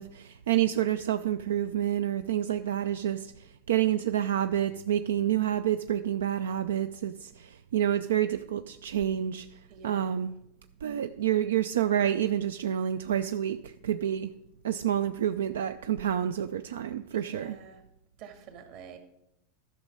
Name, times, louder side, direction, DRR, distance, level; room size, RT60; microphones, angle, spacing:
voice 1, 0.0-9.5 9.8-10.3 10.8-14.3 14.6-17.6, right 11 dB, 90° right, 10 dB, 0.4 m, -28 dB
voice 2, 9.7-10.1 17.1-17.8 18.2-19.0, right 7 dB, 55° right, 6 dB, 1.9 m, -47 dB
11.5 x 6.3 x 5.4 m, 0.81 s
supercardioid pair, 120°, 0 cm